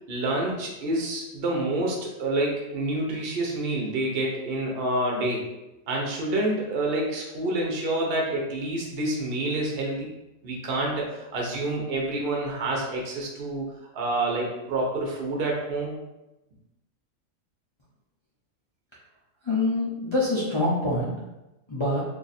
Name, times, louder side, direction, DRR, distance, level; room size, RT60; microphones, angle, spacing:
voice 1, 0.1-5.4 5.9-10.1 10.4-13.7 13.9-15.9, right 2 dB, 50° right, -1 dB, 0.8 m, -28 dB
voice 2, 19.4-21.1 21.7-22.0, left 2 dB, 45° left, -7 dB, 0.3 m, -25 dB
2.7 x 2.5 x 4.0 m, 0.98 s
omnidirectional pair, 1.4 m